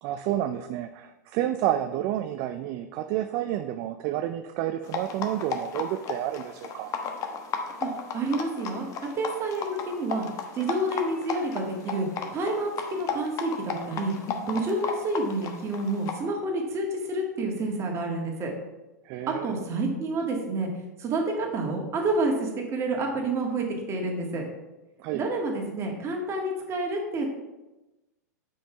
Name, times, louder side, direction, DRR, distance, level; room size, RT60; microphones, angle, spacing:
voice 1, 0.0-6.9 19.1-19.5 25.0-25.2, right 12 dB, 45° right, 8 dB, 0.4 m, -30 dB
sound 1, 4.8-16.2, left 5 dB, 35° left, 1.0 m, -35 dB
voice 2, 7.8-8.9 9.2-10.2 10.6-12.1 12.3-14.1 14.5-18.5 19.3-20.7 21.0-24.4 25.1-27.3, right 2 dB, 30° right, 0 dB, 1.9 m, -29 dB
6.3 x 5.5 x 4.5 m, 1.0 s
hypercardioid pair, 105°, 9 cm